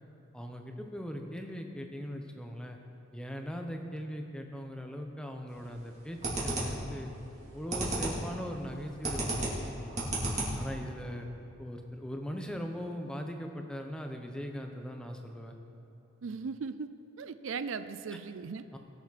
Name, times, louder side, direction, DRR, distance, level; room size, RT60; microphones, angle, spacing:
voice 1, 0.3-2.8 3.1-7.1 7.5-10.1 10.6-11.3 11.6-15.5 18.7-18.8, equal, 5° left, 3 dB, 0.8 m, -40 dB
sound 1, 5.5-5.8 6.2-6.9 7.3-8.3 8.5-10.8, right 2 dB, 35° right, 2.8 m, -33 dB
voice 2, 16.2-18.7, right 5 dB, 70° right, 12 dB, 0.4 m, -38 dB
20.5 x 7.1 x 4.2 m, 2.9 s
head